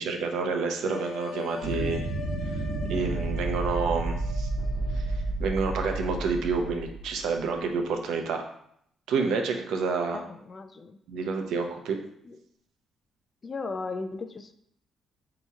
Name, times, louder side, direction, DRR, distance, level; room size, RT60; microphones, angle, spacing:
voice 1, 0.0-2.1 2.9-4.5 4.9-8.4 9.1-10.2 11.1-12.0, right 4 dB, 85° right, 4 dB, 0.6 m, -29 dB
sound 1, 0.8-5.3, left 5 dB, 75° left, 0.8 m, -41 dB
sound 2, 1.6-7.4, right 2 dB, 55° right, 0.9 m, -31 dB
sound 3, 4.6-6.5, right 1 dB, ahead, 0.8 m, -50 dB
voice 2, 10.1-11.0 12.2-12.4 13.4-14.5, left 3 dB, 40° left, 9 dB, 0.4 m, -36 dB
4.2 x 2.9 x 3.6 m, 0.71 s
cardioid pair, 90°, 0 cm